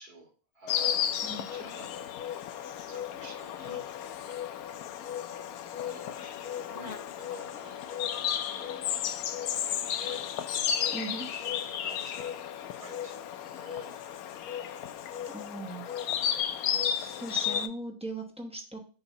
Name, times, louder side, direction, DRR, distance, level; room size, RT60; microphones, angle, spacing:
voice 1, 0.0-1.1 1.5-1.9 2.8-3.8 5.8-7.8 8.1-9.3 9.6-10.8 11.7-12.3 12.6-13.2 13.4-14.2 16.7-16.8, right 2 dB, 85° right, -1 dB, 2.6 m, -51 dB
Insect, 0.7-17.7, left 9 dB, 75° left, 1.0 m, -33 dB
voice 2, 10.9-11.3 15.3-15.8 17.0-18.8, right 2 dB, 5° right, 1 dB, 0.8 m, -39 dB
6.8 x 2.7 x 5.4 m, 0.38 s
omnidirectional pair, 1.6 m